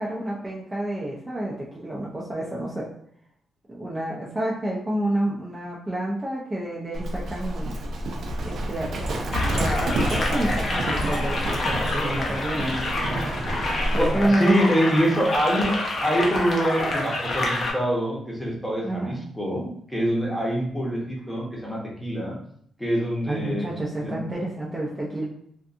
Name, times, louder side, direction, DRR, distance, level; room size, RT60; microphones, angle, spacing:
voice 1, 0.0-2.9 3.7-7.8 8.4-12.9 13.9-14.7 18.8-19.2 23.3-25.3, right 1 dB, 15° right, -6 dB, 0.5 m, -29 dB
Livestock farm animals working animals, 6.9-14.3, right 1 dB, 65° right, 0.5 m, -28 dB
sound 1, 9.3-17.7, left 2 dB, 50° left, 0.6 m, -28 dB
voice 2, 14.0-22.4 22.8-23.7 24.0-24.2, equal, 5° left, -3 dB, 0.9 m, -25 dB
2.6 x 2.4 x 2.4 m, 0.66 s
cardioid pair, 100°, 0 cm